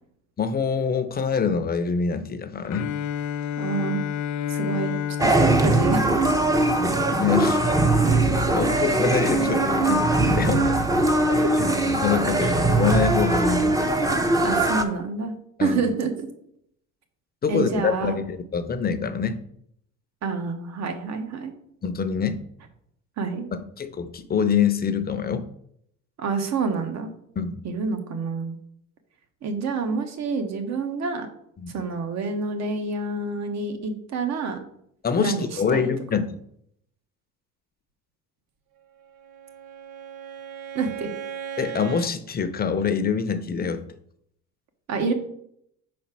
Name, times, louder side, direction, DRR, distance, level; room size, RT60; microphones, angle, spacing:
voice 1, 0.4-2.9 6.8-7.8 8.5-10.6 11.6-13.8 15.6-15.8 17.4-19.4 21.8-22.4 23.8-25.5 27.4-27.6 31.6-31.8 35.0-36.4 41.6-43.8, left 6 dB, 30° left, 10 dB, 0.7 m, -25 dB
Bowed string instrument, 2.7-6.7, left 9 dB, 65° left, 0.6 m, -30 dB
voice 2, 3.6-4.0 4.5-6.2 12.4-12.5 14.4-16.3 17.5-18.2 20.2-21.5 23.2-23.5 26.2-27.1 27.6-28.6 29.4-31.3 31.7-34.6 35.2-35.9 40.7-41.1 44.9-45.1, right 4 dB, 55° right, 6 dB, 1.3 m, -28 dB
sound 1, 5.2-14.8, right 2 dB, 10° right, 0.7 m, -21 dB
Bowed string instrument 2, 39.0-42.2, right 8 dB, 70° right, 0.7 m, -37 dB
4.9 x 4.3 x 6.0 m, 0.71 s
supercardioid pair, 95°, 32 cm